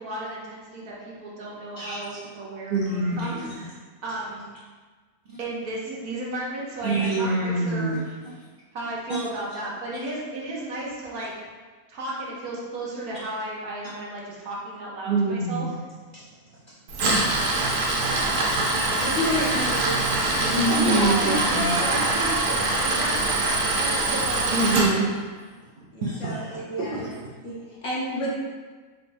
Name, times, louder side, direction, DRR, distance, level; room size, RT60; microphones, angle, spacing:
voice 1, 0.0-4.4 5.4-8.0 8.7-11.3 11.9-15.7 20.8-23.4 23.7-24.7, right 2 dB, 75° right, -4 dB, 1.4 m, -33 dB
voice 2, 1.8-2.2 2.7-3.3 6.8-8.0 9.1-9.3 15.0-15.8 16.1-16.3 18.4-18.9 20.1-20.2 20.5-21.8 24.5-25.4 26.0-27.0, right 2 dB, 60° right, -6 dB, 0.5 m, -26 dB
Tools, 16.9-24.9, right 2 dB, 90° right, 1.3 m, -24 dB
voice 3, 19.0-22.3 25.9-28.3, equal, 55° left, -7 dB, 1.4 m, -30 dB
4.6 x 3.5 x 2.6 m, 1.4 s
omnidirectional pair, 1.6 m